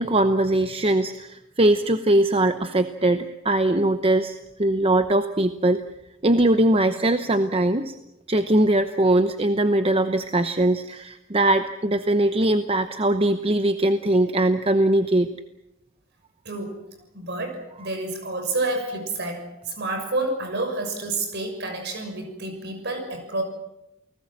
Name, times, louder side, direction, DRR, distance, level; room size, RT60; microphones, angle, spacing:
voice 1, 0.0-5.8 6.2-7.9 8.3-15.3, right 1 dB, 25° right, 9 dB, 0.9 m, -21 dB
voice 2, 16.4-16.8 17.1-23.4, right 2 dB, 50° right, 5 dB, 6.4 m, -29 dB
29.5 x 19.0 x 7.5 m, 0.92 s
head